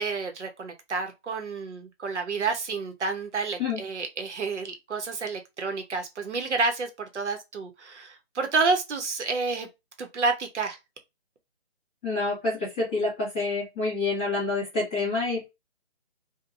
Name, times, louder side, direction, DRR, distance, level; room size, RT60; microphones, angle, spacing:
voice 1, 0.0-9.7 10.0-10.8, right 4 dB, 85° right, 0.9 m, -29 dB
voice 2, 12.0-15.5, left 3 dB, 10° left, 1.1 m, -28 dB
2.8 x 2.2 x 2.4 m
hypercardioid pair, 175°, 34 cm